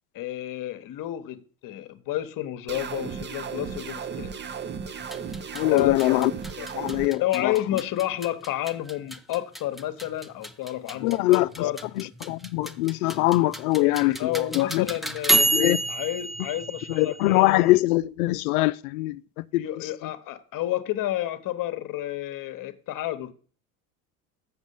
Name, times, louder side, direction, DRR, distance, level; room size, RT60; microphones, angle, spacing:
voice 1, 0.1-4.3 5.7-6.2 6.6-6.7 7.2-11.8 14.2-15.5 15.9-17.7 19.5-23.3, left 13 dB, 50° left, 1.0 m, -30 dB
sound 1, 2.7-7.1, right 6 dB, 25° right, 0.7 m, -35 dB
sound 2, 5.0-17.7, right 2 dB, ahead, 0.3 m, -30 dB
voice 2, 5.5-6.3 6.7-7.8 11.0-11.7 12.0-14.9 15.5-15.8 16.9-19.2 19.5-20.1, left 18 dB, 75° left, 0.5 m, -23 dB
7.2 x 6.2 x 5.4 m
hypercardioid pair, 75°, 44 cm